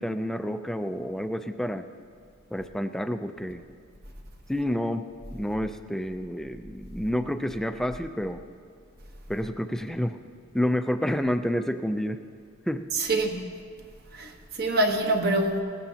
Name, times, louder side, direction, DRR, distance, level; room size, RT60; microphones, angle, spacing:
voice 1, 0.0-1.9 2.5-3.6 4.5-8.4 9.3-10.2 10.5-12.2 12.7-12.9, equal, ahead, 0.4 m, -29 dB
voice 2, 12.9-13.4 14.1-15.6, right 2 dB, 45° right, 1.1 m, -25 dB
19.0 x 14.5 x 2.8 m
head